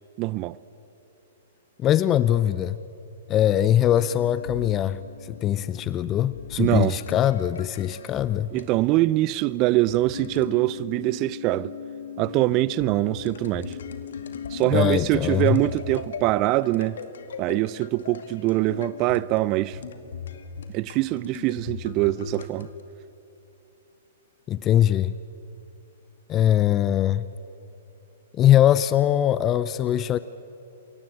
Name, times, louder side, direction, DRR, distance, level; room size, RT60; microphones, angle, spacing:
voice 1, 0.2-0.6 6.6-7.0 8.5-11.7 12.2-13.8 14.5-17.0 17.4-19.8 20.7-22.7, right 17 dB, 35° right, 0.5 m, -23 dB
voice 2, 1.8-2.8 3.3-8.5 14.7-15.6 24.5-25.1 26.3-27.3 28.3-30.2, left 11 dB, 25° left, 0.6 m, -21 dB
sound 1, 4.0-8.9 9.9-22.8, left 6 dB, 70° left, 2.2 m, -39 dB
28.0 x 23.0 x 8.6 m
hypercardioid pair, 120°, 0 cm